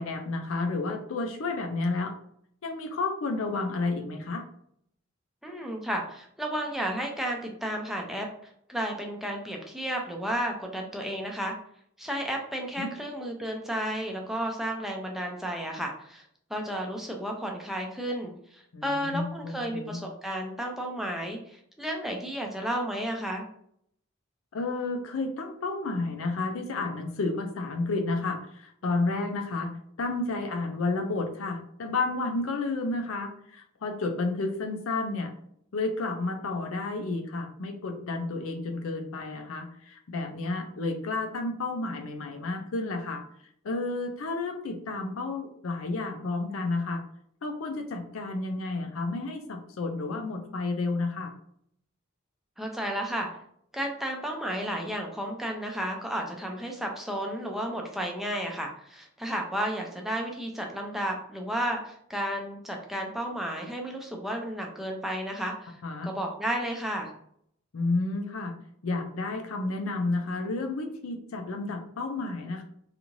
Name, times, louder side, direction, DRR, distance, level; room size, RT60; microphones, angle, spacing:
voice 1, 0.0-2.1 2.6-4.4 12.8-12.9 18.7-20.0 24.5-35.3 35.7-43.2 43.6-47.0 47.4-51.3 65.8-66.1 67.7-68.5 68.8-72.6, left 3 dB, 80° left, 5 dB, 0.5 m, -31 dB
voice 2, 5.4-8.3 8.7-11.5 12.0-16.2 16.5-23.5 52.6-53.3 53.7-65.8 66.0-67.1, equal, ahead, 1 dB, 0.4 m, -32 dB
2.6 x 2.4 x 3.0 m, 0.68 s
head